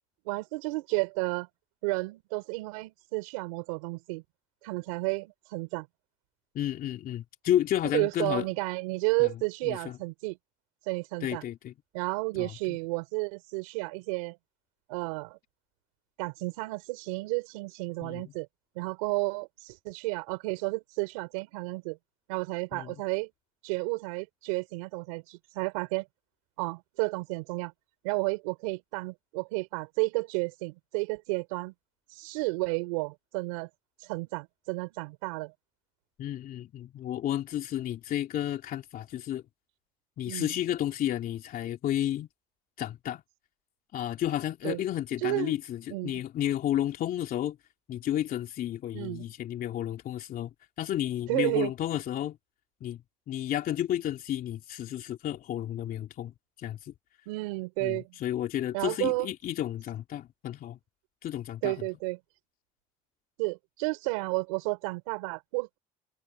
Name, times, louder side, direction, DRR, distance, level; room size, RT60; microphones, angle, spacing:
voice 1, 0.3-1.5 1.8-4.2 4.6-5.9 7.8-10.4 10.8-11.4 11.9-14.4 14.9-15.4 16.2-18.5 18.7-22.0 22.3-23.3 23.6-26.1 26.6-27.7 28.0-31.7 32.1-33.7 34.0-35.5 40.3-40.6 44.6-44.8 45.2-45.5 45.9-46.2 48.9-49.2 51.3-51.7 57.3-58.2 58.7-59.3 61.6-62.2 63.4-65.8, right 27 dB, 85° right, 4.5 m, -32 dB
voice 2, 6.5-8.4 9.2-9.3 9.6-10.0 11.2-11.7 12.4-12.8 18.0-18.3 22.7-22.9 36.2-39.4 40.2-42.3 42.8-43.2 43.9-47.6 47.9-50.5 50.8-52.4 52.8-53.0 53.3-56.9 57.8-60.8 61.2-61.7, left 12 dB, 60° left, 3.1 m, -32 dB
supercardioid pair, 75°, 17 cm